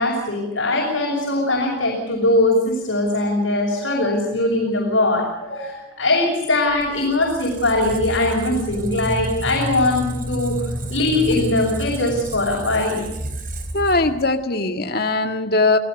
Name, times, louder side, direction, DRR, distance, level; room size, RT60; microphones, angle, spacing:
voice 1, 0.0-10.6 10.9-13.0, left 2 dB, 75° left, -3 dB, 6.2 m, -21 dB
Squeak, 6.7-14.4, equal, 45° right, 4.0 m, -30 dB
voice 2, 13.7-15.8, left 2 dB, 50° left, 5 dB, 1.9 m, -20 dB
28.0 x 17.0 x 6.7 m, 0.93 s
head